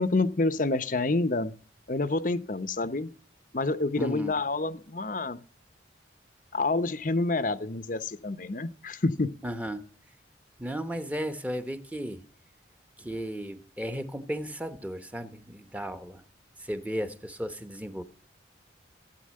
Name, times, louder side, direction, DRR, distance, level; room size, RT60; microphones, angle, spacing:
voice 1, 0.0-1.5 1.9-3.1 3.5-5.4 6.5-9.3, left 2 dB, 45° left, 13 dB, 0.8 m, -28 dB
voice 2, 4.0-4.3 9.4-9.8 10.6-12.2 13.0-16.2 16.6-18.0, equal, 10° right, 10 dB, 1.1 m, -35 dB
16.0 x 9.2 x 7.5 m, 0.41 s
head